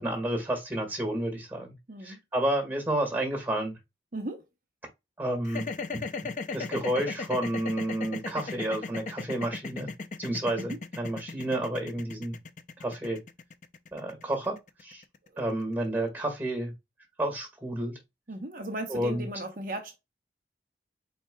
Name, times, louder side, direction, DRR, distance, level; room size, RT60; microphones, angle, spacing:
voice 1, 0.0-1.7 2.0-3.8 5.2-5.7 6.5-9.9 10.2-12.4 12.8-13.2 13.9-15.0 15.4-16.7 17.2-18.0 18.9-19.3, right 1 dB, 10° right, 1.8 m, -30 dB
voice 2, 1.9-2.2 4.1-4.4 10.6-10.8 18.3-20.0, right 1 dB, 50° right, 0.9 m, -36 dB
sound 1, 5.4-15.6, left 4 dB, 45° left, 0.5 m, -36 dB
4.4 x 4.4 x 2.2 m
head